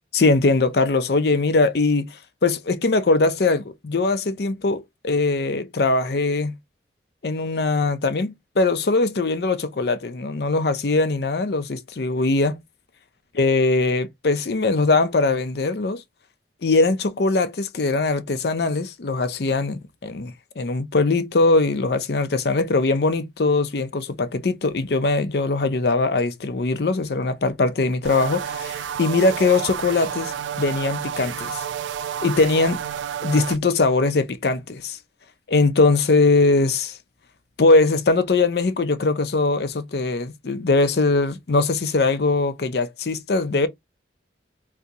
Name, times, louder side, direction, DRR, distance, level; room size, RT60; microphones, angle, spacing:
voice 1, 0.1-2.1 2.4-6.5 7.2-12.6 13.4-16.0 16.6-30.3 30.6-31.6 32.2-32.8 33.2-35.0 35.5-37.0 37.6-43.7, left 3 dB, 60° left, 0.5 m, -21 dB
sound 1, 28.0-33.6, right 8 dB, 85° right, 0.3 m, -30 dB
3.7 x 2.8 x 2.7 m
head